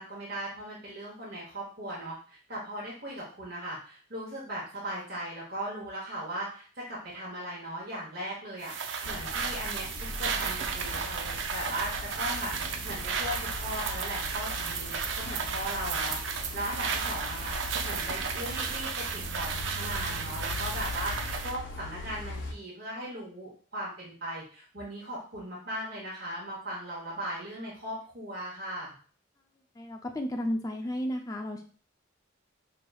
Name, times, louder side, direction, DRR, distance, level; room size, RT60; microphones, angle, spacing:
voice 1, 0.0-8.7 9.0-12.5 12.8-29.0, right 1 dB, 50° right, -5 dB, 1.1 m, -38 dB
sound 1, 8.6-21.6, right 6 dB, 70° right, 0.4 m, -34 dB
sound 2, 9.0-22.5, left 2 dB, 60° left, 0.6 m, -40 dB
voice 2, 29.8-31.7, left 1 dB, 15° left, 3 dB, 0.4 m, -33 dB
5.1 x 3.0 x 2.3 m, 0.42 s
head